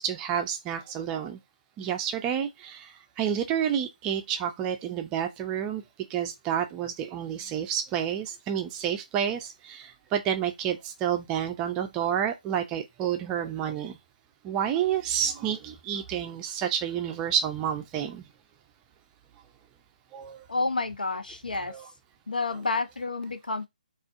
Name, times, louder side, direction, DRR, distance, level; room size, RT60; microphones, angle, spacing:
voice 1, 0.0-1.4 1.8-2.9 3.2-5.8 6.1-14.0 14.4-18.2 20.1-20.4 21.7-21.9, right 9 dB, 15° right, 0.4 m, -29 dB
voice 2, 20.5-21.7 22.3-23.7, left 3 dB, 80° left, 0.8 m, -29 dB
5.8 x 2.4 x 2.4 m
figure-of-eight pair, 145°, 5 cm